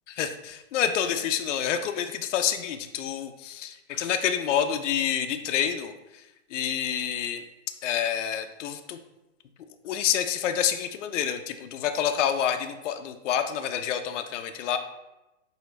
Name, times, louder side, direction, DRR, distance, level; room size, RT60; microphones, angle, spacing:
voice 1, 0.2-5.9 6.5-7.4 7.8-9.0 9.8-14.8, left 9 dB, 70° left, 8 dB, 0.5 m, -28 dB
5.0 x 2.7 x 3.1 m, 0.97 s
hypercardioid pair, 165°, 38 cm